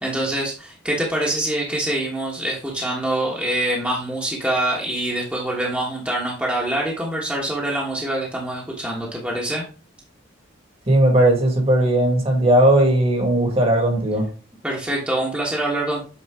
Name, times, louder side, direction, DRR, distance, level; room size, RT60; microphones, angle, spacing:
voice 1, 0.0-9.6 14.6-16.0, right 1 dB, 5° right, 1.3 m, -25 dB
voice 2, 10.9-14.3, right 1 dB, 30° right, 1.8 m, -17 dB
8.2 x 4.5 x 3.6 m
head